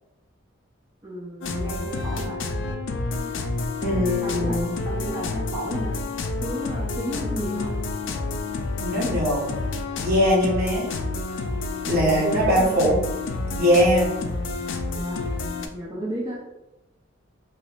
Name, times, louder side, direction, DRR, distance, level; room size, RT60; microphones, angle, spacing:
voice 1, 1.0-2.4 4.2-6.0 6.4-7.7 12.1-12.9 14.9-15.3 15.7-16.4, right 1 dB, 20° right, -6 dB, 0.6 m, -33 dB
sound 1, 1.4-15.7, left 3 dB, 70° left, 0.4 m, -29 dB
voice 2, 3.8-4.7 8.8-9.5 10.0-10.9 11.9-13.0 13.5-14.1, equal, 50° right, -3 dB, 0.9 m, -21 dB
3.3 x 2.9 x 2.4 m, 0.94 s
head